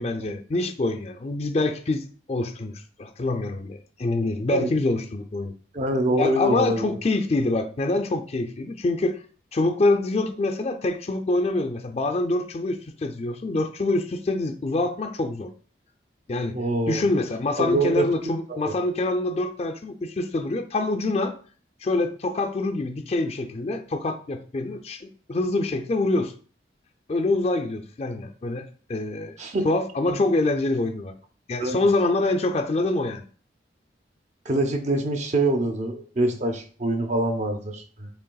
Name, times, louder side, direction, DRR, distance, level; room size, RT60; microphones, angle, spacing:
voice 1, 0.0-2.0 2.3-5.5 6.2-9.2 9.5-15.5 16.3-16.6 16.9-21.3 21.8-26.3 27.1-29.4 29.6-31.1 31.5-33.2, left 2 dB, 35° left, 7 dB, 0.4 m, -25 dB
voice 2, 5.7-7.0 16.5-17.0 17.6-18.1 18.5-18.7 29.4-29.6 30.1-30.2 31.6-31.8 34.5-38.1, right 1 dB, 40° right, 5 dB, 0.7 m, -25 dB
6.6 x 3.4 x 2.3 m, 0.42 s
head